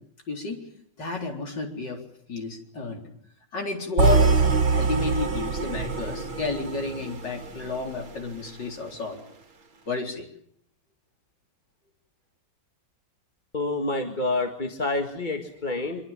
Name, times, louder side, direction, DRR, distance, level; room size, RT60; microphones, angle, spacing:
voice 1, 0.3-0.6 1.0-2.0 2.3-3.1 3.5-9.2 9.9-10.3, left 3 dB, 60° left, 2 dB, 4.8 m, -31 dB
sound 1, 4.0-8.1, right 4 dB, 75° right, 2.8 m, -24 dB
voice 2, 13.5-16.0, left 2 dB, 25° left, 3 dB, 1.9 m, -28 dB
25.0 x 24.0 x 7.4 m, 0.68 s
omnidirectional pair, 2.2 m